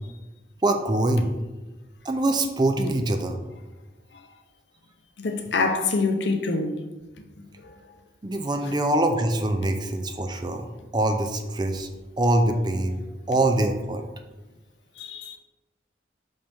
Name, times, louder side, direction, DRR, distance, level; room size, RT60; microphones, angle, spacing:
voice 1, 0.6-1.3 2.1-3.4 8.2-10.7 10.9-11.9 12.2-13.0 13.3-14.0, right 1 dB, 25° right, 0.4 m, -24 dB
voice 2, 5.2-6.8 15.0-15.4, left 3 dB, 75° left, 0.7 m, -25 dB
5.6 x 5.5 x 3.4 m
head